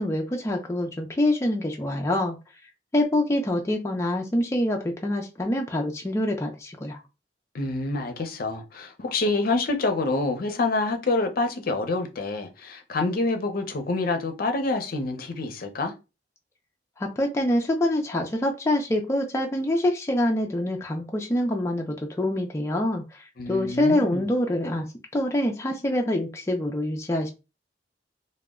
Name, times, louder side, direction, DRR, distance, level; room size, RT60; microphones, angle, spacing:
voice 1, 0.0-2.4 2.9-7.0 17.0-24.9 25.1-27.3, left 1 dB, 15° left, 0.4 m, -25 dB
voice 2, 7.5-15.9 23.4-24.2, left 3 dB, 55° left, 0.6 m, -27 dB
2.1 x 2.0 x 3.5 m
head